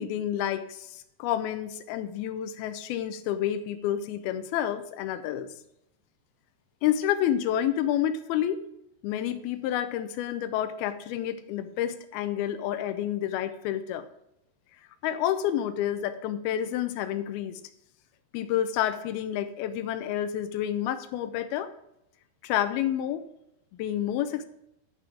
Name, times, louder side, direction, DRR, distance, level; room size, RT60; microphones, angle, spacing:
voice 1, 0.0-5.5 6.8-8.6 9.0-14.1 15.0-17.6 18.3-21.7 22.4-23.3 23.8-24.5, left 11 dB, 80° left, 11 dB, 2.4 m, -29 dB
11.5 x 5.8 x 4.9 m, 0.80 s
omnidirectional pair, 4.7 m